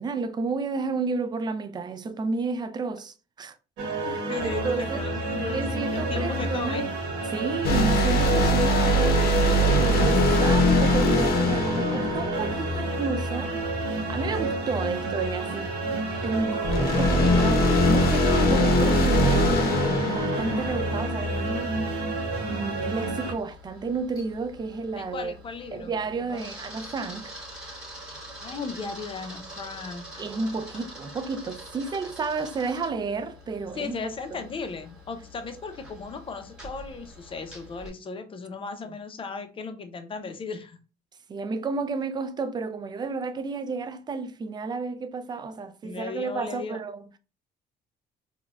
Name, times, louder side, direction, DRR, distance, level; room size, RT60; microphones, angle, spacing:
voice 1, 0.0-3.6 4.1-5.0 5.5-6.8 7.3-13.5 13.8-15.7 16.2-19.8 20.0-21.9 22.4-25.3 25.7-27.3 30.2-34.1 41.3-47.2, right 4 dB, 25° right, 0.4 m, -31 dB
sound 1, 3.8-23.3, right 2 dB, 85° right, 0.9 m, -30 dB
voice 2, 4.0-6.9 24.9-26.5 28.4-30.2 30.7-30.9 33.7-40.8 45.8-46.8, left 4 dB, 30° left, 0.6 m, -36 dB
sound 2, 7.6-13.1 16.6-21.4, left 1 dB, 70° left, 0.8 m, -22 dB
Camera, 22.3-37.9, equal, 5° right, 1.5 m, -45 dB
4.1 x 2.2 x 2.4 m
cardioid pair, 110°, 17 cm